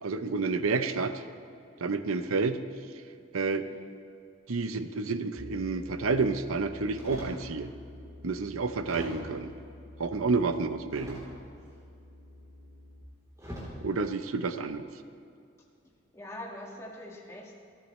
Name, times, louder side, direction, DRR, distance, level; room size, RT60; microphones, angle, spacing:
voice 1, 0.0-1.2 1.8-2.6 3.3-3.7 4.5-7.7 8.2-9.5 10.0-11.2 13.8-14.9, right 4 dB, 85° right, 10 dB, 0.7 m, -29 dB
sound 1, 5.4-13.0, left 1 dB, 40° right, 2.0 m, -48 dB
sound 2, 7.0-7.5 8.1-8.2 8.8-9.5 10.9-11.6 12.7-12.9 13.4-13.8 14.5-14.8, equal, 15° right, 3.4 m, -42 dB
voice 2, 16.1-17.6, left 1 dB, 15° left, -2 dB, 1.7 m, -44 dB
27.5 x 10.5 x 3.2 m, 2.5 s
head